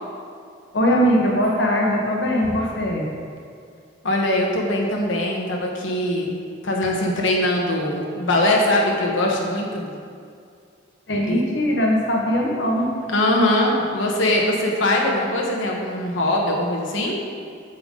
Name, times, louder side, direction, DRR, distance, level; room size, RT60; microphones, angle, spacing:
voice 1, 0.7-3.1 11.1-12.9, equal, 65° left, -2 dB, 1.1 m, -20 dB
voice 2, 4.0-9.9 11.3-11.4 13.1-17.2, left 1 dB, 85° left, -1 dB, 1.2 m, -22 dB
7.8 x 7.8 x 3.8 m, 2.3 s
head